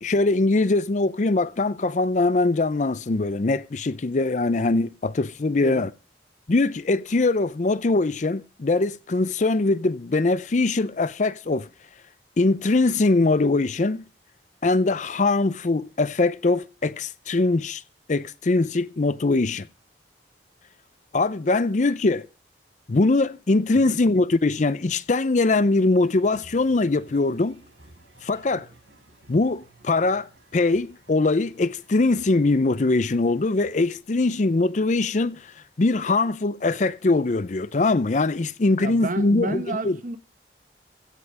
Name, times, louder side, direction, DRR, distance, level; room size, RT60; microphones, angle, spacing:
voice 1, 0.0-5.9 6.5-11.7 12.4-14.0 14.6-17.8 18.1-19.7 21.1-22.3 22.9-27.6 28.2-28.7 29.3-35.5 35.8-40.0, left 3 dB, 45° left, 0.5 m, -22 dB
sound 1, 26.0-34.0, right 2 dB, 80° right, 7.2 m, -54 dB
voice 2, 38.8-40.2, right 2 dB, 45° right, 1.1 m, -31 dB
16.0 x 5.7 x 7.5 m
head